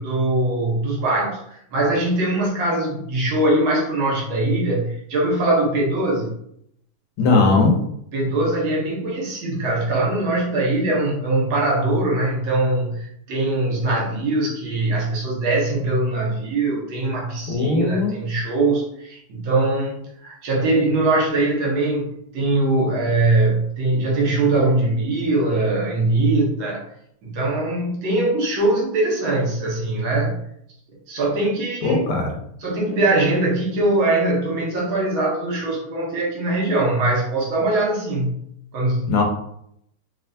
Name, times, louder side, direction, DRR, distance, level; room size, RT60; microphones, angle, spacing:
voice 1, 0.0-1.4 1.7-6.3 8.1-26.8 27.2-30.4 31.1-32.1 32.6-38.3 38.7-39.1, right 2 dB, 70° right, -3 dB, 1.8 m, -21 dB
voice 2, 7.2-7.7 17.5-18.1 31.8-32.3 39.1-39.2, left 3 dB, 85° left, 1 dB, 1.8 m, -18 dB
3.7 x 3.3 x 2.6 m, 0.71 s
omnidirectional pair, 2.3 m